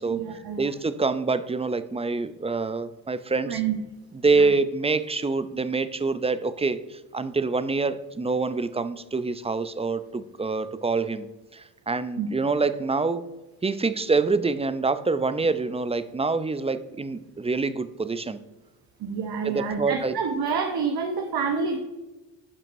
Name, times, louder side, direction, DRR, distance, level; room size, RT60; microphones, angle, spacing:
voice 1, 0.1-0.6 3.5-3.7 4.4-4.5 12.2-12.3 19.0-21.8, right 5 dB, 55° right, 4 dB, 1.0 m, -28 dB
voice 2, 0.6-3.6 4.2-11.3 11.5-13.2 13.6-18.4 19.4-20.1, right 4 dB, 15° right, 13 dB, 0.5 m, -26 dB
10.5 x 5.9 x 2.7 m, 1.1 s
hypercardioid pair, 50°, 44 cm